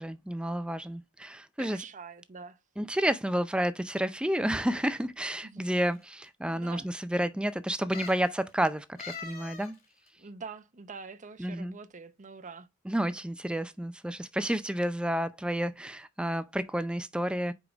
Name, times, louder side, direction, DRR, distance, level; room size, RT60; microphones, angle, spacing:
voice 1, 0.0-1.8 2.8-9.7 11.4-11.7 12.9-17.5, right 1 dB, 5° right, 0.4 m, -30 dB
voice 2, 1.6-2.6 5.4-5.7 6.4-6.9 10.2-12.7, right 5 dB, 35° right, 0.7 m, -45 dB
sound 1, 4.5-5.1 5.9-6.0 6.3-6.4 7.9-8.3 9.0-9.8 10.1-10.2, left 5 dB, 45° left, 2.9 m, -43 dB
4.9 x 4.9 x 5.1 m
head